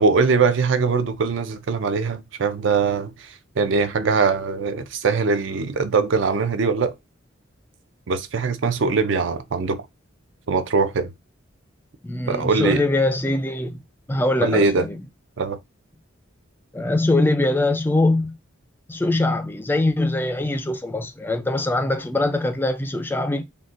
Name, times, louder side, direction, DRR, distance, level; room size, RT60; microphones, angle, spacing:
voice 1, 0.0-6.9 8.1-9.8 10.5-11.1 12.3-12.8 14.4-14.9 15.4-15.6, right 4 dB, 65° right, 0.4 m, -22 dB
voice 2, 12.0-13.8 14.1-15.0 16.7-18.3 18.9-23.4, left 2 dB, 10° left, 0.3 m, -22 dB
3.9 x 2.2 x 2.4 m
head